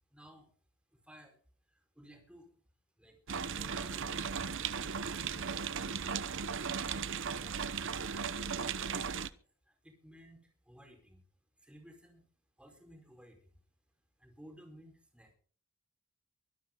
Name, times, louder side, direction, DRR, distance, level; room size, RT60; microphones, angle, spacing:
voice 1, 0.1-0.5 0.9-1.4 1.7-2.5 3.0-5.5 8.7-9.4 9.7-11.2 11.6-12.2 12.6-13.6 14.2-15.3, equal, 5° right, 2 dB, 4.9 m, -57 dB
sound 1, 3.3-9.3, right 6 dB, 55° right, 0.8 m, -36 dB
24.0 x 13.0 x 4.0 m, 0.43 s
head